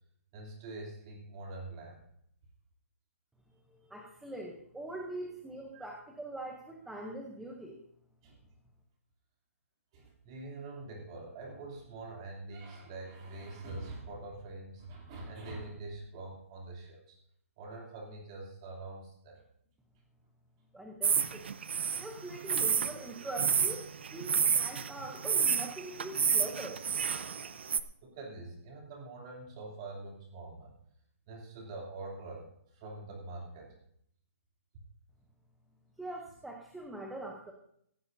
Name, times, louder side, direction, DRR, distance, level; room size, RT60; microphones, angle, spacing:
voice 1, 0.3-2.0 5.7-5.9 8.2-8.4 9.9-17.2 17.6-19.4 28.0-30.8 31.3-32.4 32.7-33.7, right 2 dB, 20° right, 0 dB, 2.9 m, -44 dB
voice 2, 3.7-7.8 20.7-21.4 22.0-26.8 36.0-37.5, right 1 dB, ahead, 0 dB, 0.7 m, -43 dB
sound 1, 21.0-27.8, right 7 dB, 50° right, 0.7 m, -30 dB
17.0 x 16.0 x 2.7 m, 0.70 s
hypercardioid pair, 175°, 8 cm